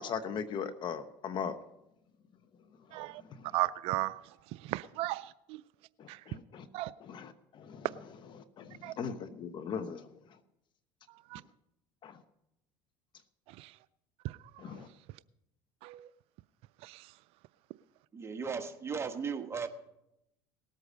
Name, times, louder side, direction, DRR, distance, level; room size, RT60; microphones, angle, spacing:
voice 1, 0.0-1.6 3.2-3.5 6.0-6.7 7.0-7.9 8.6-10.1 12.0-12.2 14.6-14.9, left 6 dB, 45° left, 1.0 m, -39 dB
voice 2, 2.9-3.2 3.5-4.2 4.6-5.6 6.1-6.2 6.7-6.9 8.8-8.9 11.3-11.4 13.5-13.7 14.2-14.4 15.8-16.1 16.8-17.1, right 18 dB, 60° right, 0.4 m, -35 dB
voice 3, 18.1-19.7, right 6 dB, 25° right, 1.3 m, -36 dB
18.5 x 8.2 x 5.3 m
supercardioid pair, 90°, 11 cm